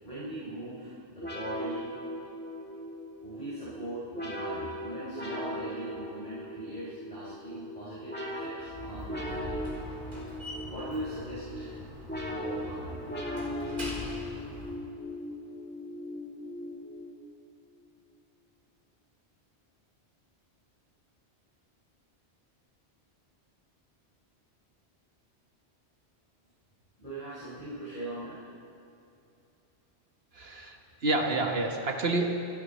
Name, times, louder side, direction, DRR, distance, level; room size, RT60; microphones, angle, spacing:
voice 1, 0.0-1.9 3.2-9.6 10.0-10.2 10.7-11.8 12.3-13.0 27.0-28.4, right 1 dB, 30° left, -11 dB, 5.4 m, -41 dB
sound 1, 1.2-17.4, left 1 dB, 10° left, 2.2 m, -38 dB
Slam, 8.6-14.8, equal, 45° right, 4.2 m, -42 dB
voice 2, 30.3-30.8 31.0-32.3, right 2 dB, 65° right, 3 dB, 1.7 m, -28 dB
28.0 x 12.0 x 4.3 m, 2.6 s
omnidirectional pair, 1.1 m